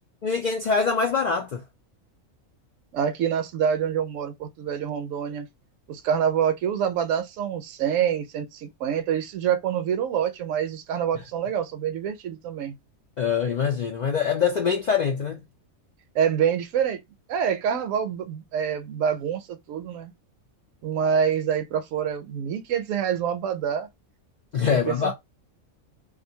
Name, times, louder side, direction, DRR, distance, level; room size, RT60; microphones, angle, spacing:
voice 1, 0.2-1.6 13.2-15.4 24.5-25.1, left 6 dB, 90° left, 0.3 m, -24 dB
voice 2, 2.9-5.5 5.9-12.7 16.1-17.0 17.3-20.1 20.8-23.9 24.7-25.1, right 8 dB, 75° right, 0.9 m, -26 dB
2.5 x 2.5 x 2.6 m
omnidirectional pair, 1.4 m